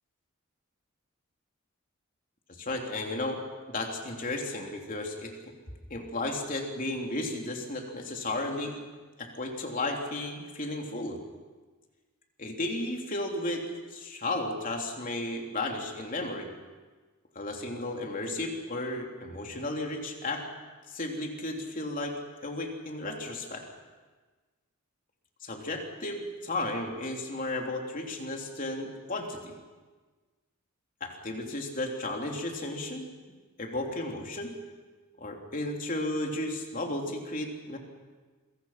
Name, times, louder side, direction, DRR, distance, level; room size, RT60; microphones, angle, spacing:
voice 1, 2.6-5.3 5.9-8.8 9.2-11.2 12.4-13.6 13.9-16.5 17.3-20.4 20.9-22.1 22.4-23.6 25.4-29.5 31.0-33.0 33.6-34.5 35.2-37.8, left 2 dB, 40° left, 2 dB, 3.4 m, -34 dB
27.5 x 24.0 x 5.9 m, 1.3 s
head